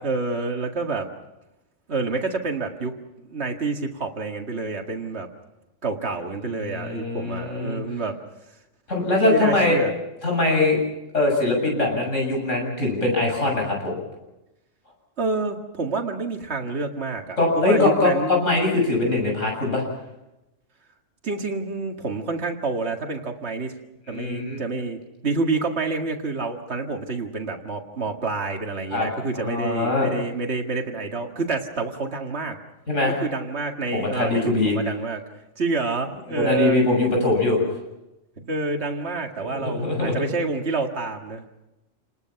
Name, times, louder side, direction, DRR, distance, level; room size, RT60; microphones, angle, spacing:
voice 1, 0.0-1.1 1.9-2.9 3.3-5.3 5.8-8.2 9.3-10.0 15.2-18.4 21.2-23.7 24.1-32.6 33.2-35.2 35.6-36.8 38.4-41.7, right 3 dB, 55° right, 3 dB, 2.2 m, -28 dB
voice 2, 6.6-7.8 8.9-9.8 10.2-10.8 11.1-13.9 17.4-19.8 24.1-24.6 28.9-29.1 29.3-30.1 32.9-33.1 33.9-34.7 36.3-37.6 39.4-40.1, left 2 dB, 70° left, 0 dB, 7.9 m, -22 dB
29.0 x 20.5 x 5.9 m, 0.95 s
omnidirectional pair, 1.3 m